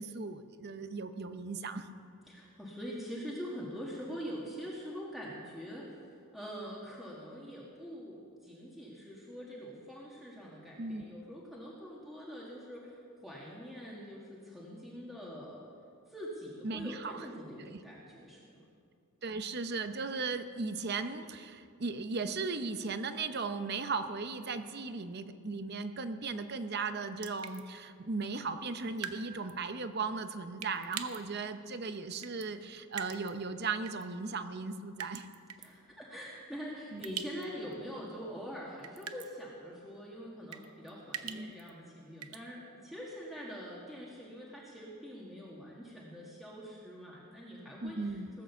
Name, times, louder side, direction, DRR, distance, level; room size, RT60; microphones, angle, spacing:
voice 1, 0.0-1.9 10.8-11.2 16.6-17.2 17.6-17.8 19.2-35.3 36.9-37.1 41.2-41.5 47.8-48.3, right 4 dB, 45° right, 10 dB, 0.7 m, -37 dB
voice 2, 2.3-6.1 6.3-15.7 16.1-18.7 35.6-48.4, equal, ahead, -5 dB, 1.6 m, -44 dB
sound 1, 27.2-27.6 29.0-29.2 29.5-29.6 30.6-31.2 32.2-32.5 32.9-33.3 33.9-34.0 35.0-35.7 37.0-37.5 37.7-37.8 38.8-39.3 40.5-41.7 42.2-42.4, right 9 dB, 85° right, 0.8 m, -42 dB
18.0 x 8.8 x 7.0 m, 2.4 s
head